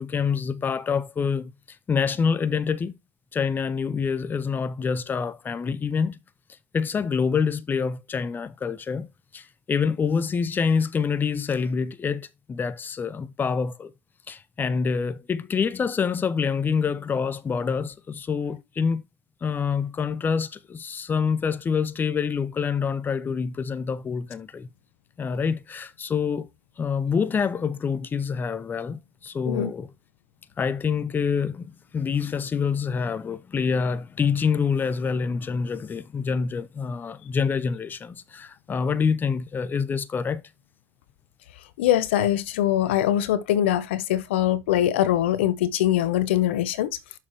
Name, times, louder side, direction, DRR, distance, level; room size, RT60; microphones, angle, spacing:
voice 1, 0.0-1.5 1.9-3.0 3.3-6.2 6.7-9.1 9.3-13.9 14.3-19.0 19.4-24.7 25.2-26.5 26.8-29.9 30.6-40.4, left 6 dB, 30° left, 0.9 m, -26 dB
voice 2, 41.8-47.0, left 12 dB, 85° left, 0.8 m, -22 dB
7.1 x 6.7 x 3.0 m
hypercardioid pair, 80°, 6 cm